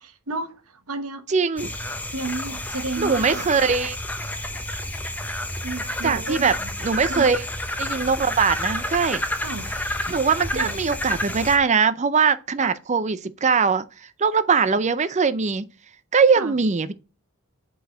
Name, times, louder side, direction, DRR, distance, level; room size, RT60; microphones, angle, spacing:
voice 1, 0.0-1.3 2.1-3.5 5.6-6.7 7.1-7.3 9.4-9.7 10.5-10.7 12.6-12.7 16.4-16.6, right 3 dB, 80° right, 1.2 m, -32 dB
voice 2, 1.3-1.7 3.0-4.0 6.0-6.5 6.8-7.4 7.8-9.2 10.1-13.8 14.2-15.7 16.1-16.9, right 5 dB, 30° right, 0.5 m, -21 dB
sound 1, 1.6-11.6, left 1 dB, 10° left, 0.8 m, -30 dB
8.2 x 4.0 x 3.8 m
head